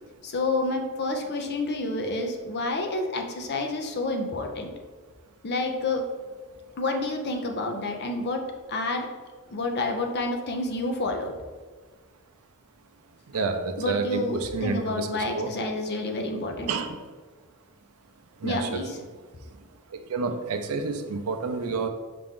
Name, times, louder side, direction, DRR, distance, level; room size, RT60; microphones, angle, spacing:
voice 1, 0.2-4.7 5.4-6.0 6.8-8.4 8.7-9.1 9.5-11.3 13.8-16.7 18.4-19.0, left 2 dB, 50° left, 4 dB, 0.6 m, -29 dB
voice 2, 13.3-15.5 16.7-17.0 18.4-18.8 19.9-21.9, right 4 dB, 80° right, 6 dB, 0.5 m, -29 dB
5.8 x 2.5 x 3.6 m, 1.4 s
head